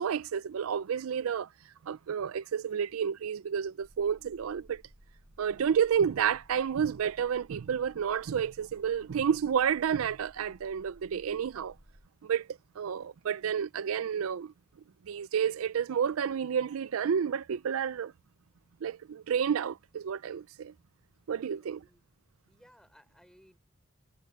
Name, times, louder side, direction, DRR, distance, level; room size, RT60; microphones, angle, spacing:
voice 1, 0.0-1.5 1.8-4.8 5.4-11.7 12.2-12.5 12.8-14.5 15.1-18.1 18.8-20.7 21.3-21.8, right 7 dB, 90° right, 0.4 m, -30 dB
sound 1, 3.8-12.1, equal, 70° right, 5.8 m, -58 dB
voice 2, 21.6-22.0 22.5-23.6, equal, 5° left, 5.9 m, -61 dB
head